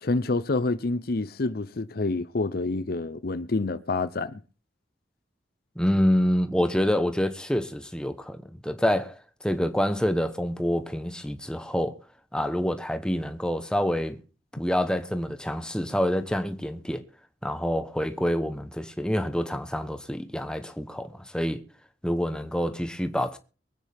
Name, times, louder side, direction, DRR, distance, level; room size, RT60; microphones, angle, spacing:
voice 1, 0.0-4.4, left 3 dB, 60° left, 0.7 m, -27 dB
voice 2, 5.8-12.0 12.3-14.2 14.5-17.0 17.4-21.6 22.0-23.4, equal, 5° left, 1.1 m, -27 dB
23.5 x 9.2 x 3.5 m
head